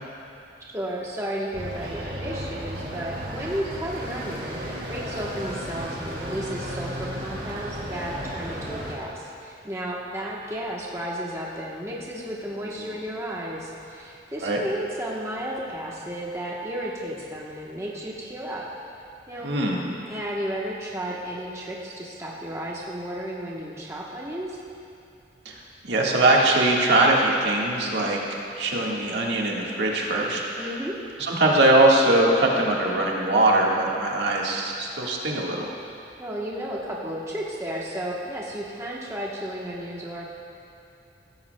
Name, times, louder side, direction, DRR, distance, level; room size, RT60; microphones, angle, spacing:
voice 1, 0.7-18.7 19.3-19.5 20.1-24.6 30.6-30.9 36.2-40.3, equal, 15° right, -4 dB, 1.0 m, -33 dB
sound 1, 1.5-9.0, equal, 55° right, 2.4 m, -34 dB
voice 2, 19.4-19.8 25.4-30.8 31.2-35.7, right 2 dB, 70° right, -2 dB, 1.5 m, -22 dB
16.0 x 14.5 x 2.2 m, 2.6 s
head